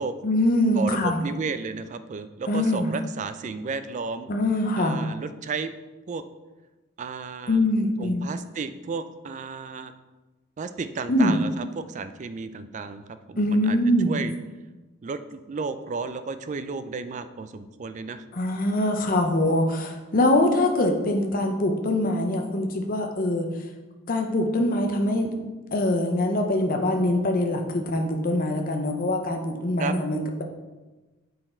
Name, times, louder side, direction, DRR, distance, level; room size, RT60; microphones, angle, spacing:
voice 1, 0.2-1.2 2.5-2.9 4.3-5.0 7.5-8.3 11.1-11.4 13.4-14.2 18.3-23.5 24.1-25.3 25.7-30.4, left 1 dB, 40° left, 3 dB, 0.6 m, -23 dB
voice 2, 0.8-4.3 4.8-5.7 6.1-6.2 7.0-7.6 8.0-9.9 10.6-13.0 13.3-13.8 14.1-14.3 15.0-18.2 29.8-29.9, right 4 dB, 35° right, 11 dB, 0.3 m, -33 dB
6.6 x 4.0 x 4.4 m, 1.2 s
head